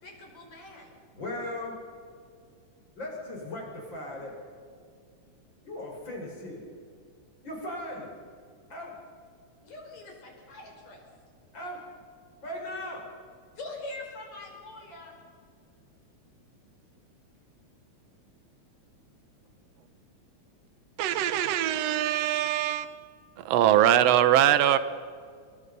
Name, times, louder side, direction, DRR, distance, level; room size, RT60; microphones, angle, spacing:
voice 1, 0.0-0.9 9.6-11.0 13.6-15.1, left 2 dB, 70° left, 0 dB, 6.5 m, -43 dB
voice 2, 1.1-1.8 3.0-4.4 5.6-6.6 7.4-8.1 8.7-9.0 11.5-11.8 12.4-13.1, left 1 dB, 40° left, 0 dB, 6.2 m, -37 dB
voice 3, 21.0-23.0 23.5-24.8, right 11 dB, 65° right, 12 dB, 2.0 m, -22 dB
27.5 x 21.5 x 5.5 m, 2.1 s
omnidirectional pair, 3.3 m